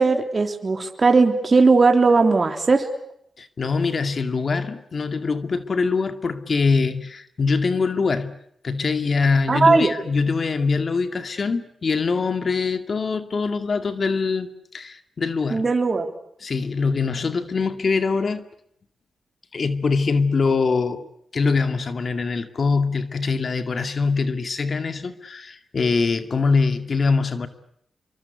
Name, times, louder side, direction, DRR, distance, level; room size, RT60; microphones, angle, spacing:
voice 1, 0.0-2.9 9.5-9.9 15.5-16.1, right 4 dB, 40° right, 5 dB, 3.3 m, -18 dB
voice 2, 3.4-8.4 8.6-14.5 14.7-15.7 16.4-18.4 19.5-21.1 21.3-27.5, left 4 dB, 55° left, 9 dB, 2.2 m, -23 dB
27.5 x 24.0 x 8.3 m, 0.70 s
cardioid pair, 60°, 0 cm